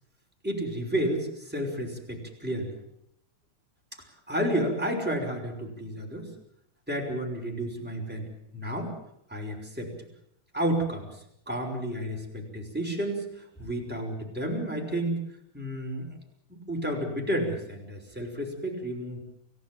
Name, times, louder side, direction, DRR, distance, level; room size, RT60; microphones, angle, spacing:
voice 1, 0.4-2.8 4.0-6.3 6.9-8.9 9.3-9.9 10.5-15.2 15.5-16.1 16.5-19.2, right 1 dB, 5° right, 0 dB, 5.5 m, -31 dB
29.0 x 16.5 x 7.7 m, 0.72 s
omnidirectional pair, 2.4 m